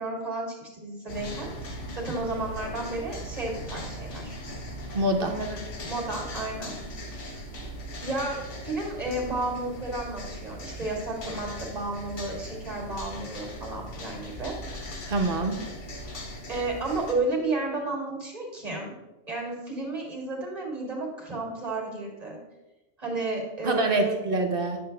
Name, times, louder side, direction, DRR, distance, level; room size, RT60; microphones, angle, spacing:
voice 1, 0.0-4.4 5.2-5.6 5.8-7.4 8.0-14.6 16.5-18.9 19.3-22.4 23.0-24.2, right 2 dB, 30° right, -1 dB, 2.2 m, -32 dB
sound 1, 1.1-17.1, equal, 75° left, 1.5 m, -39 dB
voice 2, 4.9-5.3 15.1-15.6 23.6-24.8, right 2 dB, 50° right, 4 dB, 1.1 m, -25 dB
10.0 x 6.9 x 3.4 m, 1.1 s
omnidirectional pair, 1.2 m